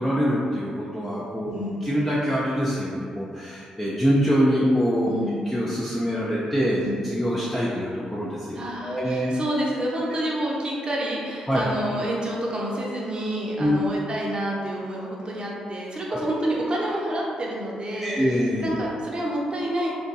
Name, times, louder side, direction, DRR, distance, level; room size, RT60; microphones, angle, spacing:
voice 1, 0.0-1.5 1.9-5.1 5.5-9.3 11.5-11.6 13.6-13.7 17.9-18.7, equal, 10° left, -8 dB, 0.6 m, -24 dB
voice 2, 8.5-19.9, right 1 dB, 35° right, -4 dB, 0.8 m, -28 dB
2.6 x 2.2 x 4.0 m, 2.2 s
supercardioid pair, 50°, 3 cm